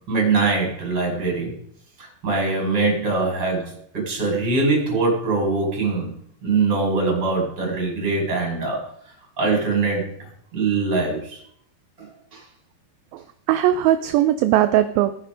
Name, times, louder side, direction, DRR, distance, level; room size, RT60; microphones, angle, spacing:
voice 1, 0.1-1.5 2.0-6.1 6.4-8.8 9.4-11.4 12.0-12.4, right 3 dB, 25° right, -1 dB, 5.5 m, -23 dB
voice 2, 13.1-15.2, right 12 dB, 80° right, 11 dB, 2.2 m, -19 dB
17.5 x 9.9 x 5.1 m, 0.65 s
omnidirectional pair, 4.8 m